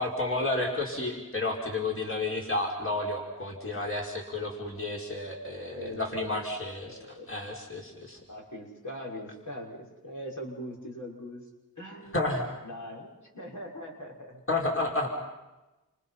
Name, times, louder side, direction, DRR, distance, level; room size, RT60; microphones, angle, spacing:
voice 1, 0.0-7.0 7.3-8.2 12.1-12.5 14.5-15.1, left 2 dB, 40° left, -1 dB, 5.5 m, -31 dB
voice 2, 5.8-6.4 6.8-7.3 8.3-11.4 11.8-12.3 12.6-13.1 13.3-14.4, equal, 65° left, -2 dB, 6.2 m, -41 dB
30.0 x 28.5 x 5.8 m, 1.0 s
wide cardioid pair, 45°, 33 cm